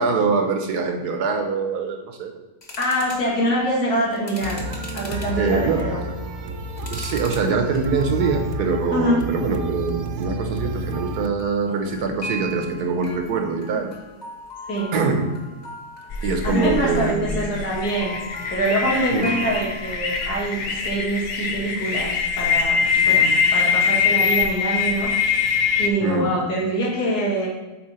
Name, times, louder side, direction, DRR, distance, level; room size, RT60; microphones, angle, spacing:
voice 1, 0.0-2.4 5.4-5.8 6.9-13.9 14.9-15.3 16.2-17.5 19.1-19.4 23.1-23.3 26.0-26.3, right 4 dB, 80° right, 4 dB, 1.5 m, -24 dB
sound 1, 2.6-3.3 4.1-5.4 6.1-7.5 7.7-8.3 8.7-8.9 11.4-20.5, equal, 30° left, 0.9 m, -38 dB
voice 2, 2.8-4.6 4.9-6.1 8.9-9.2 14.7-14.9 16.4-18.2 18.5-27.5, right 1 dB, 75° left, -5 dB, 2.4 m, -24 dB
sound 2, 4.4-11.3, right 1 dB, 65° right, 0.7 m, -30 dB
sound 3, 16.1-25.9, left 6 dB, 60° left, 1.0 m, -23 dB
7.7 x 4.3 x 4.3 m, 1.2 s
omnidirectional pair, 1.7 m